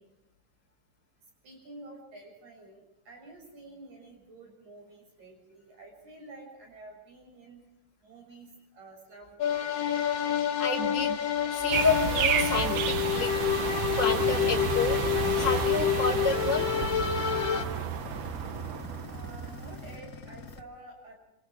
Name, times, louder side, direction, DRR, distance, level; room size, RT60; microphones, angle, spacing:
voice 1, 1.4-7.6 8.0-9.7 19.1-21.2, right 2 dB, 60° right, 1 dB, 8.5 m, -49 dB
sound 1, 9.4-17.6, left 10 dB, 55° left, 2.4 m, -28 dB
voice 2, 10.6-11.2 11.5-13.3 13.9-15.0 15.3-16.7, left 4 dB, 5° right, -1 dB, 1.6 m, -29 dB
sound 2, 11.7-19.9, right 8 dB, 80° right, 2.6 m, -31 dB
sound 3, 14.0-20.6, left 6 dB, 85° left, 0.8 m, -43 dB
27.5 x 26.0 x 3.7 m, 0.88 s
omnidirectional pair, 3.7 m